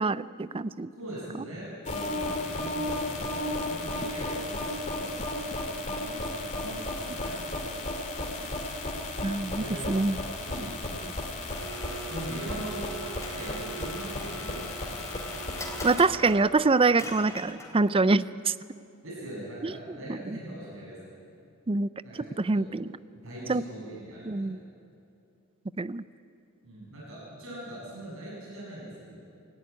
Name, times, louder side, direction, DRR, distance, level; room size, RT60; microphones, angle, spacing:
voice 1, 0.0-0.9 9.2-10.2 15.8-18.5 19.6-19.7 20.1-20.4 21.7-21.9 22.4-22.9 23.5-23.6 24.3-24.6 25.8-26.0, right 3 dB, 25° right, 16 dB, 0.5 m, -25 dB
voice 2, 1.0-5.2 5.8-7.6 9.5-9.9 10.5-11.2 12.1-12.9 13.3-15.3 19.0-21.2 22.0-22.6 23.1-24.4 26.6-29.2, right 1 dB, 65° right, -6 dB, 7.6 m, -41 dB
sound 1, 1.9-16.0, left 2 dB, 35° left, 2.8 m, -34 dB
Domestic sounds home sounds, 11.5-18.0, right 2 dB, 15° left, 3.5 m, -41 dB
27.5 x 16.0 x 9.5 m, 2.6 s
head